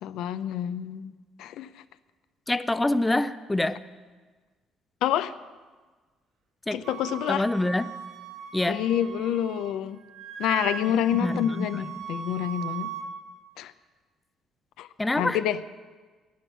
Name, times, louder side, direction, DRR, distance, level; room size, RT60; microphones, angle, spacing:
voice 1, 0.0-1.1 1.4-1.8 5.0-5.3 6.7-7.5 8.7-10.0 10.4-12.9 13.6-13.7 14.8-14.9 15.1-15.6, left 10 dB, 80° left, 13 dB, 0.5 m, -28 dB
voice 2, 2.5-3.8 6.7-6.8 7.3-7.9 8.5-8.8 11.2-11.7 15.0-15.4, left 2 dB, 10° left, 13 dB, 0.4 m, -25 dB
Wind instrument woodwind instrument, 6.8-9.8 10.0-13.1, right 7 dB, 60° right, 2.4 m, -38 dB
10.5 x 10.0 x 9.1 m, 1.4 s
cardioid pair, 150°, 0 cm